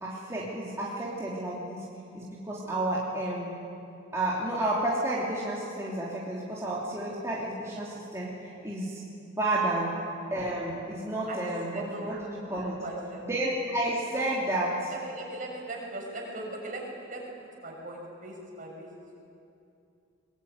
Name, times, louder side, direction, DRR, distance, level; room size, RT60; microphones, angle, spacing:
voice 1, 0.0-1.8 2.1-3.6 4.1-9.0 9.4-9.9 10.3-12.8 13.2-14.9, right 1 dB, 15° right, -7 dB, 3.3 m, -31 dB
voice 2, 11.7-12.1 12.7-13.2 14.1-14.2 15.0-17.3 17.6-18.9, right 1 dB, 45° right, -1 dB, 6.9 m, -39 dB
24.0 x 21.5 x 9.7 m, 2.7 s
head